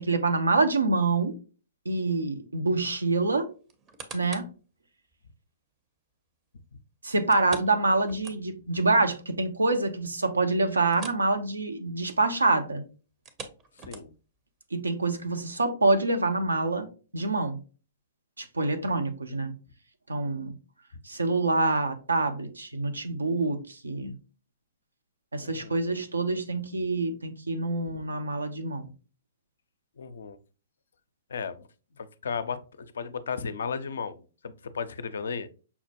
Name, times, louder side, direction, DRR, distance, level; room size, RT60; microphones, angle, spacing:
voice 1, 0.0-1.3 1.9-3.5 4.1-4.5 7.0-12.8 14.7-16.9 17.1-17.6 18.4-19.5 20.1-20.5 21.1-24.1 25.3-28.9, right 3 dB, 90° right, 0.6 m, -26 dB
sound 1, 3.7-4.6 5.1-5.2 7.3-8.8 9.1-9.2 9.6-9.7 10.9-11.3 11.6-11.8 13.1-14.4 15.0-15.1, right 4 dB, 25° right, 0.6 m, -44 dB
voice 2, 25.4-25.8 30.0-30.4 31.3-31.7 32.0-35.5, left 5 dB, 70° left, 0.4 m, -35 dB
5.6 x 2.1 x 2.7 m
hypercardioid pair, 120°, 0 cm